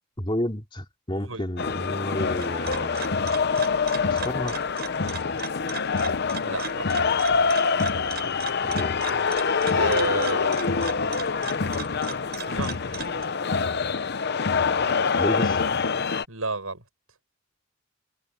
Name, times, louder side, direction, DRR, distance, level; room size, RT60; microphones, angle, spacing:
voice 1, 0.2-3.4 4.1-4.6 8.6-9.0 15.1-15.6, left 1 dB, 25° left, 3.3 m, -31 dB
voice 2, 1.1-1.5 6.4-7.2 9.7-10.8 12.3-12.9 16.3-16.8, right 3 dB, 80° right, 7.9 m, -31 dB
sound 1, 1.6-16.2, left 5 dB, 50° left, 0.8 m, -25 dB
sound 2, 2.1-13.2, right 7 dB, 50° right, 6.8 m, -39 dB
head